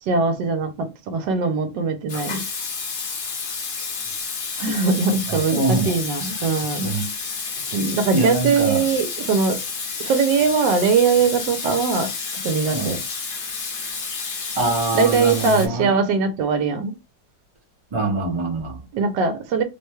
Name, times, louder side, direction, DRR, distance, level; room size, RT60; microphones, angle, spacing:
voice 1, 0.0-2.5 4.6-7.0 7.5-9.6 10.0-13.0 14.9-16.9 18.9-19.6, right 5 dB, 75° right, 1.2 m, -21 dB
Water tap faucet / Sink (filling or washing), 2.1-15.7, left 5 dB, 60° left, 1.1 m, -30 dB
voice 2, 5.5-6.0 6.8-7.1 8.1-8.9 12.7-13.0 14.5-15.9 17.9-18.8, right 3 dB, 35° right, 0.4 m, -24 dB
3.3 x 2.1 x 3.1 m
omnidirectional pair, 2.0 m